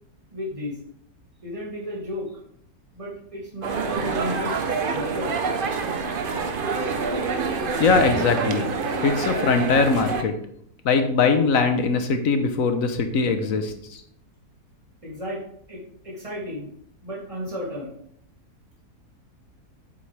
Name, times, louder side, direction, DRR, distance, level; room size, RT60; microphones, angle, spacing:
voice 1, 0.3-0.8 1.4-2.3 2.9-5.3 15.0-15.4 15.7-16.7 17.0-17.9, left 1 dB, 20° right, -5 dB, 2.8 m, -33 dB
sound 1, 3.6-10.2, right 4 dB, 45° right, 0.7 m, -26 dB
voice 2, 7.8-8.7 9.0-10.3 10.8-13.7, left 4 dB, 60° left, 7 dB, 1.3 m, -21 dB
8.1 x 7.9 x 3.4 m, 0.67 s
omnidirectional pair, 1.7 m